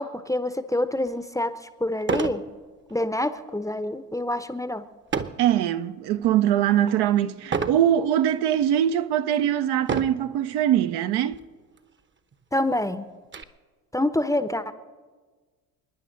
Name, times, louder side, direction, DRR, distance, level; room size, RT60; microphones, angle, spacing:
voice 1, 0.0-1.5 1.8-2.4 2.9-4.9 12.5-13.1 13.9-14.7, left 1 dB, 5° left, 0.8 m, -26 dB
sound 1, 1.1-1.2 2.0-2.5 2.9-3.2 5.1-5.5 6.1-6.5 7.5-7.9 8.6-8.7 9.8-10.3 11.3-11.4 11.8-11.9 12.3-13.4, right 5 dB, 25° right, 1.0 m, -29 dB
voice 2, 5.4-11.4, right 11 dB, 55° right, 0.8 m, -22 dB
29.5 x 10.0 x 4.0 m
hypercardioid pair, 60°, 48 cm